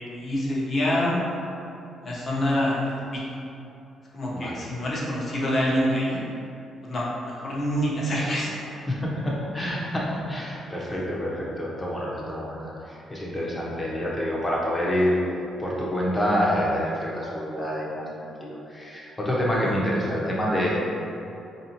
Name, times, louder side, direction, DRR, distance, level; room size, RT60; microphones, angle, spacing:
voice 1, 0.1-1.2 2.0-2.8 3.1-3.2 4.1-6.2 6.8-8.5 19.7-19.8, equal, 45° left, -6 dB, 1.0 m, -26 dB
voice 2, 4.3-4.6 8.2-8.4 8.7-15.2 15.6-20.8, equal, 20° left, -5 dB, 0.9 m, -27 dB
4.6 x 2.7 x 2.9 m, 2.7 s
cardioid pair, 90°, 0 cm